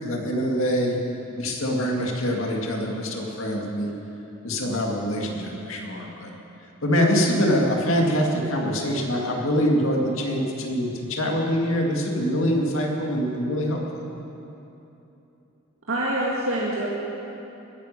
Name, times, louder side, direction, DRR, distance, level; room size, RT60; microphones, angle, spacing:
voice 1, 0.0-1.0 1.3-3.9 4.4-6.3 6.8-14.0, equal, 70° left, 0 dB, 2.2 m, -24 dB
voice 2, 15.9-16.9, right 1 dB, 70° right, -4 dB, 1.9 m, -25 dB
20.5 x 10.5 x 6.8 m, 3.0 s
head